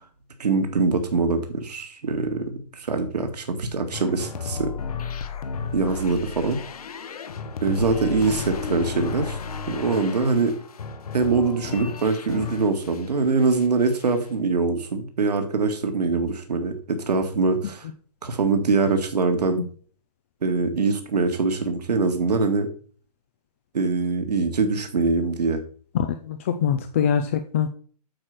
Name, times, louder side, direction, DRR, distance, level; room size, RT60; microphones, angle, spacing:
voice 1, 0.4-4.7 5.7-6.6 7.6-9.4 9.7-10.5 11.1-17.9 18.2-19.6 20.4-22.7 23.7-25.6, right 4 dB, 70° right, 6 dB, 1.9 m, -23 dB
sound 1, 3.9-13.1 13.4-14.2, left 5 dB, 60° left, 1.2 m, -33 dB
voice 2, 25.9-27.7, left 8 dB, 20° left, 8 dB, 0.4 m, -24 dB
8.8 x 4.9 x 5.9 m, 0.44 s
hypercardioid pair, 155°, 21 cm